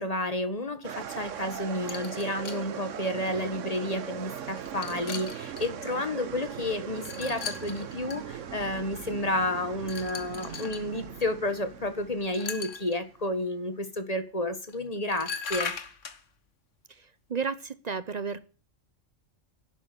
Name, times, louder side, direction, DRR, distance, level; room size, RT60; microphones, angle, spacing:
voice 1, 0.0-15.7, left 1 dB, 30° left, 9 dB, 1.7 m, -31 dB
sound 1, 0.8-13.1, right 8 dB, 80° right, 1.2 m, -39 dB
sound 2, 1.9-2.6 3.5-3.6 4.5-5.7 7.0-8.2 9.9-10.9 12.2-13.0 14.7-14.8 15.1-16.2, left 5 dB, 75° left, 1.6 m, -38 dB
voice 2, 16.9-18.4, right 5 dB, 40° right, 15 dB, 0.7 m, -33 dB
11.5 x 9.2 x 8.1 m, 0.37 s
omnidirectional pair, 1.3 m